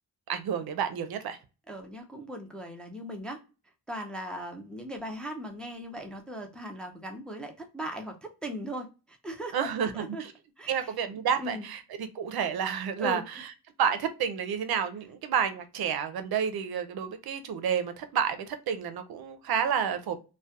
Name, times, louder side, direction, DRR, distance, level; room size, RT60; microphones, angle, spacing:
voice 1, 0.3-1.4 9.5-10.3 10.7-13.5 13.8-20.2, right 7 dB, 75° right, 0.5 m, -30 dB
voice 2, 1.7-3.4 3.9-9.7 10.0-10.2 10.6-10.9 11.4-11.6 13.0-13.2, equal, 5° left, 0.4 m, -38 dB
2.6 x 2.1 x 2.2 m
cardioid pair, 95°, 38 cm